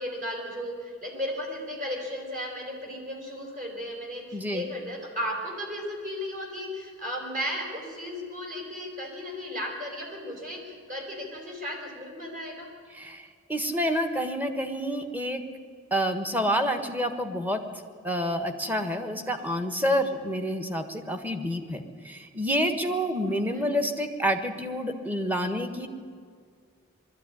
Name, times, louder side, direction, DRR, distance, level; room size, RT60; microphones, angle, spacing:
voice 1, 0.0-12.7 23.3-23.7, equal, 40° right, 1 dB, 5.2 m, -35 dB
voice 2, 4.3-4.7 12.9-15.4 15.9-17.6 18.0-25.9, equal, 10° right, 7 dB, 1.5 m, -28 dB
21.0 x 14.0 x 9.9 m, 2.1 s
head